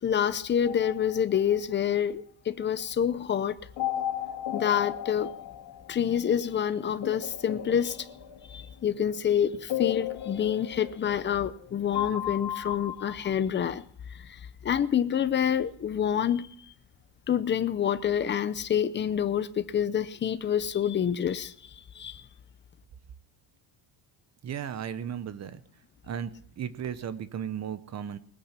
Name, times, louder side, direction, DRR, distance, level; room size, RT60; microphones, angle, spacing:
voice 1, 0.0-3.6 4.5-5.3 5.9-8.1 8.5-13.8 14.1-16.5 17.3-22.2, left 9 dB, 25° left, 0.5 m, -27 dB
sound 1, 0.6-1.9 3.8-6.4 7.0-9.0 9.7-11.6 11.9-13.3, left 11 dB, 60° left, 2.5 m, -35 dB
voice 2, 24.4-25.6 26.0-28.2, right 8 dB, 35° right, 0.8 m, -35 dB
20.0 x 8.9 x 5.7 m
cardioid pair, 180°, 48 cm